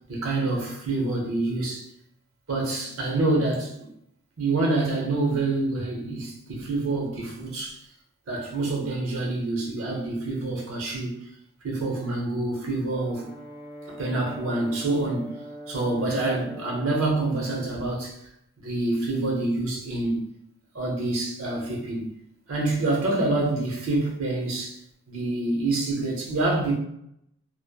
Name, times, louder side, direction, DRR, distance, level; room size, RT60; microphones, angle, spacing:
voice 1, 0.1-1.8 2.5-3.9 4.4-7.8 8.3-11.2 11.6-13.3 13.9-15.3 15.7-18.1 18.6-20.2 20.7-22.1 22.5-24.8 25.1-26.8, right 2 dB, 85° right, -2 dB, 0.8 m, -27 dB
Brass instrument, 12.9-17.1, equal, 5° right, 0.6 m, -42 dB
3.0 x 2.1 x 2.2 m, 0.74 s
head